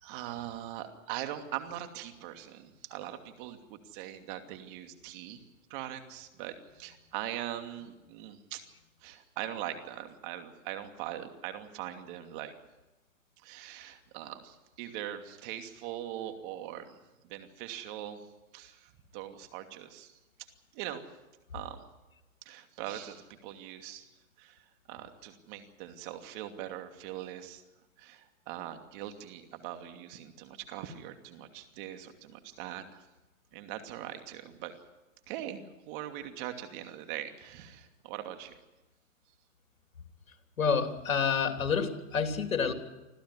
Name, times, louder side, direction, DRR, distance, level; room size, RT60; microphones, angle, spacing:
voice 1, 0.0-5.4 5.7-8.6 9.0-12.5 13.4-16.9 17.2-18.2 18.5-20.2 20.7-21.0 21.5-21.8 22.5-24.1 24.4-24.6 24.9-27.6 28.0-33.0 33.5-34.7 35.3-38.5, right 12 dB, 40° right, 6 dB, 2.7 m, -41 dB
voice 2, 40.6-42.7, left 6 dB, 85° left, 6 dB, 3.2 m, -28 dB
26.5 x 14.5 x 9.8 m, 1.1 s
hypercardioid pair, 140°, 40 cm